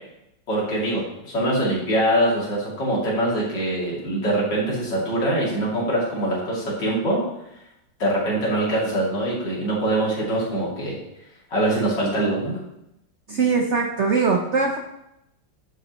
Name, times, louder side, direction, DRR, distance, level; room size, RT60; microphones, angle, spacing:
voice 1, 0.5-7.2 8.0-11.0 11.5-12.6, right 1 dB, 75° left, -5 dB, 3.5 m, -23 dB
voice 2, 13.3-14.8, right 4 dB, 55° right, 2 dB, 0.8 m, -21 dB
10.5 x 7.9 x 3.0 m, 0.84 s
omnidirectional pair, 2.0 m